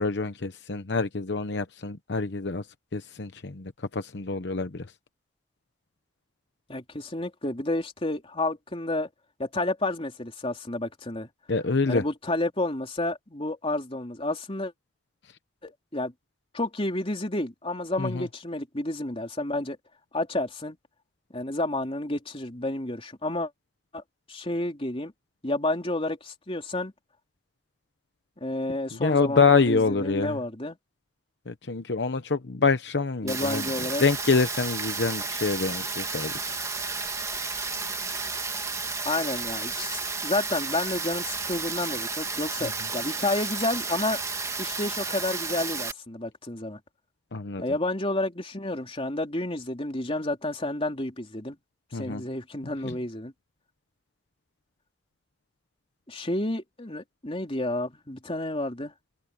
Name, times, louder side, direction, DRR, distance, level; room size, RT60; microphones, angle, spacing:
voice 1, 0.0-2.6 2.9-4.9 11.5-12.0 18.0-18.3 28.9-30.4 31.5-33.7 34.0-36.5 42.6-42.7 47.3-47.6 51.9-52.2 52.8-53.0, left 4 dB, 70° left, 0.9 m, -26 dB
voice 2, 6.7-9.1 9.4-11.3 11.9-14.7 15.6-16.1 16.5-19.8 20.1-20.8 21.3-23.5 23.9-24.0 24.3-25.1 25.4-26.9 28.4-30.8 33.2-34.0 39.0-44.2 44.6-46.8 47.6-51.6 51.9-53.3 56.1-58.9, left 2 dB, 35° left, 3.4 m, -30 dB
Rain, 33.3-45.9, right 4 dB, 20° right, 2.0 m, -32 dB
head